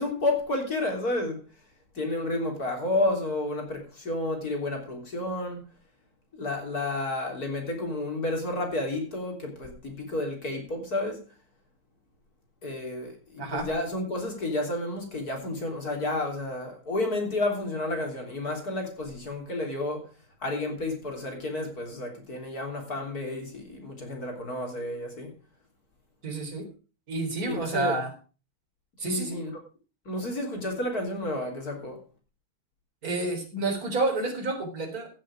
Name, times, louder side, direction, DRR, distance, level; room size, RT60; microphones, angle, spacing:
voice 1, 0.0-1.4 1.9-5.7 6.4-11.2 12.6-20.1 20.4-25.3 27.4-27.9 29.0-29.5 30.1-32.0, left 2 dB, 45° left, 3.9 m, -31 dB
voice 2, 13.4-13.7 26.2-26.7 27.1-28.1 29.0-29.4 33.0-35.1, right 2 dB, 40° right, 4.2 m, -29 dB
16.5 x 7.5 x 4.8 m
omnidirectional pair, 2.3 m